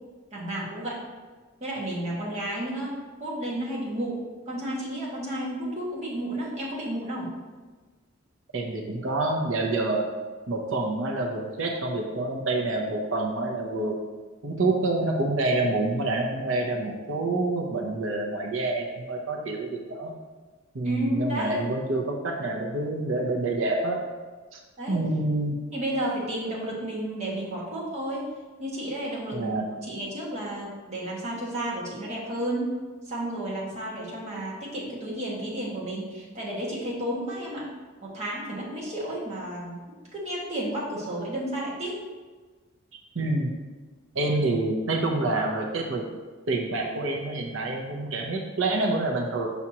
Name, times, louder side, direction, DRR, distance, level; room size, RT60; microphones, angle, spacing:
voice 1, 0.3-1.0 1.6-7.3 20.8-21.6 24.8-25.1 25.7-28.3 28.6-32.7 33.0-37.6 38.0-39.8 40.1-42.0, right 1 dB, 35° right, -5 dB, 1.6 m, -32 dB
voice 2, 8.5-10.1 10.5-14.0 14.4-20.1 20.7-24.0 24.5-24.6 24.9-25.6 29.3-29.6 43.1-43.5 44.1-46.0 46.5-49.5, right 2 dB, 70° right, 1 dB, 0.7 m, -27 dB
6.1 x 5.7 x 2.9 m, 1.3 s
head